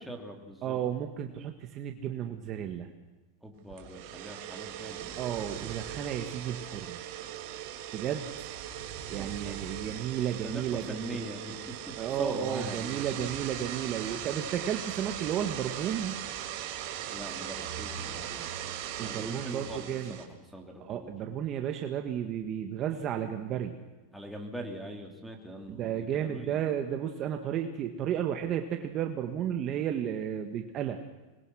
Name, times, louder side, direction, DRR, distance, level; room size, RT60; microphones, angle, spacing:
voice 1, 0.1-0.8 3.4-5.2 9.2-9.6 10.4-13.2 17.1-18.8 19.0-21.2 24.1-26.6, right 1 dB, ahead, 0 dB, 3.2 m, -42 dB
voice 2, 0.6-2.9 5.2-7.0 7.9-8.3 9.1-11.2 12.0-16.2 19.0-20.2 20.8-23.8 25.7-31.0, right 9 dB, 30° right, 5 dB, 1.6 m, -33 dB
sound 1, 3.7-20.2, right 10 dB, 50° right, 3.2 m, -39 dB
26.0 x 21.0 x 6.4 m, 1.2 s
supercardioid pair, 160°, 0 cm